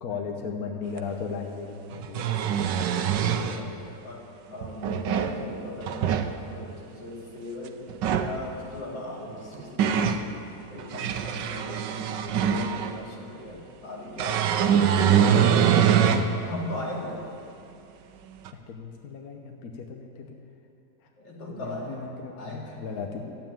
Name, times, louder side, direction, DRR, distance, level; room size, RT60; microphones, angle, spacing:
voice 1, 0.0-2.7 3.0-3.9 14.7-14.8 18.7-20.4 21.5-23.4, left 5 dB, 60° left, 3 dB, 1.3 m, -37 dB
sound 1, 1.0-1.1 1.9-3.6 4.6-5.4 5.8-6.3 7.9-8.3 9.3-10.2 10.8-13.0 14.2-16.3 16.8-16.9 18.4-18.5, right 8 dB, 80° right, 1.4 m, -23 dB
voice 2, 3.0-7.8 8.0-10.3 10.7-16.0 16.3-17.2 21.2-22.0 22.4-22.8, left 1 dB, 75° left, -3 dB, 3.2 m, -38 dB
13.0 x 9.1 x 9.0 m, 2.6 s
omnidirectional pair, 2.0 m